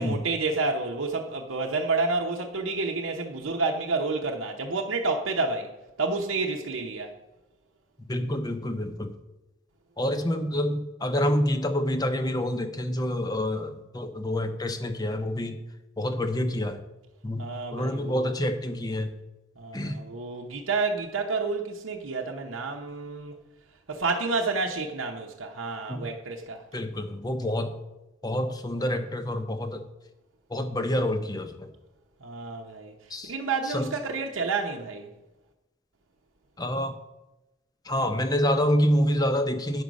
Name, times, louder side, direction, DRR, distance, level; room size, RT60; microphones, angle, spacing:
voice 1, 0.0-5.7 6.0-7.1 17.4-18.4 19.6-23.3 23.9-26.6 32.2-32.9 33.3-35.1, right 3 dB, 75° right, 0.8 m, -29 dB
voice 2, 8.1-9.1 10.0-15.6 16.0-16.8 17.2-17.5 17.7-19.1 19.7-20.0 25.9-26.1 26.7-27.7 28.2-29.8 30.5-31.7 33.1-33.3 33.6-33.9 36.6-37.0 37.8-39.8, left 1 dB, 20° left, 0.7 m, -27 dB
9.6 x 6.2 x 5.2 m
head